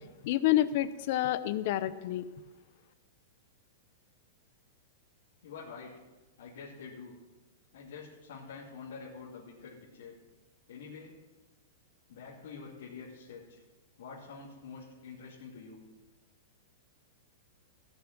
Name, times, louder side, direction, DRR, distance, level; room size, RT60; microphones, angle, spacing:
voice 1, 0.2-2.2, left 13 dB, 40° left, 14 dB, 0.6 m, -28 dB
voice 2, 5.4-5.9 6.4-7.1 7.7-10.1 10.7-11.2 12.1-13.6 14.0-15.8, left 5 dB, 65° left, -7 dB, 2.7 m, -47 dB
17.0 x 7.1 x 6.0 m, 1.2 s
supercardioid pair, 175°, 0 cm